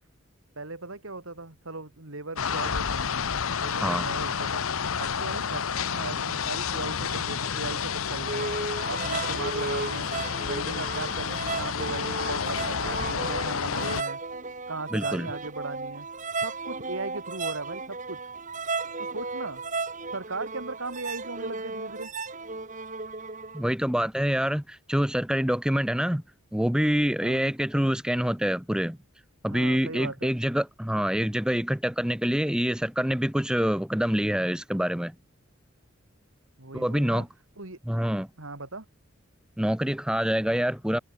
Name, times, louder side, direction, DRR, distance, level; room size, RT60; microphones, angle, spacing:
voice 1, 0.6-3.2 3.6-4.6 5.0-8.5 8.9-10.1 10.4-14.2 14.7-16.1 16.4-18.2 19.0-19.6 20.1-22.1 27.2-27.5 29.5-30.4 36.6-37.3 37.6-37.8 38.4-38.8, right 3 dB, 75° right, 2.9 m, -37 dB
sound 1, 2.4-14.0, left 6 dB, 80° left, 0.9 m, -30 dB
sound 2, 8.3-23.6, right 3 dB, 35° right, 3.3 m, -35 dB
voice 2, 14.9-15.3 23.5-26.2 26.5-29.0 29.4-35.1 36.7-37.3 37.9-38.3 39.6-41.0, equal, 5° right, 0.7 m, -26 dB
head